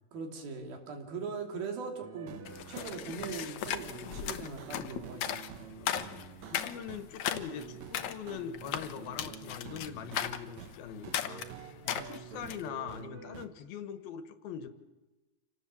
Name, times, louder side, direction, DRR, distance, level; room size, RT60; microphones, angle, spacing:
voice 1, 0.1-2.4 2.7-5.6 11.9-12.1, right 5 dB, 80° right, 3 dB, 4.6 m, -40 dB
sound 1, 2.0-7.1 7.3-10.8 11.0-13.5, right 9 dB, 60° right, 2.1 m, -48 dB
sound 2, 2.5-12.7, left 10 dB, 65° left, 1.9 m, -38 dB
voice 2, 6.5-11.5 11.8-14.7, left 8 dB, 85° left, 10 dB, 3.2 m, -42 dB
27.5 x 18.5 x 7.5 m, 1.1 s
omnidirectional pair, 4.2 m